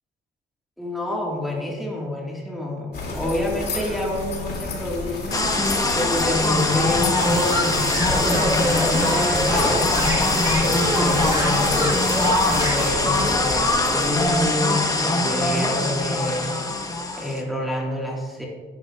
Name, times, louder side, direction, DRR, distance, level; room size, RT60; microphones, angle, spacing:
voice 1, 0.8-5.4 6.0-12.2 12.5-16.5 17.2-18.4, left 1 dB, ahead, -3 dB, 1.8 m, -28 dB
sound 1, 2.9-14.5, left 2 dB, 55° left, 2.7 m, -31 dB
sound 2, 5.3-17.4, left 2 dB, 15° left, 1.2 m, -22 dB
sound 3, 7.1-12.9, right 1 dB, 20° right, 1.7 m, -27 dB
10.5 x 10.5 x 2.4 m, 1.5 s
cardioid pair, 90°, 20 cm